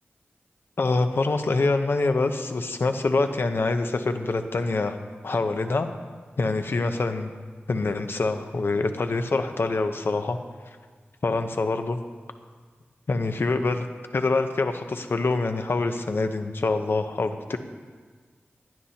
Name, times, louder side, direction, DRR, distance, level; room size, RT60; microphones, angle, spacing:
voice 1, 0.8-5.0 5.2-5.9 6.4-7.3 7.7-10.4 11.2-12.0 13.1-13.9 14.1-17.6, left 3 dB, 65° left, 7 dB, 0.8 m, -25 dB
18.0 x 11.5 x 2.9 m, 1.6 s
wide cardioid pair, 75°, 4 cm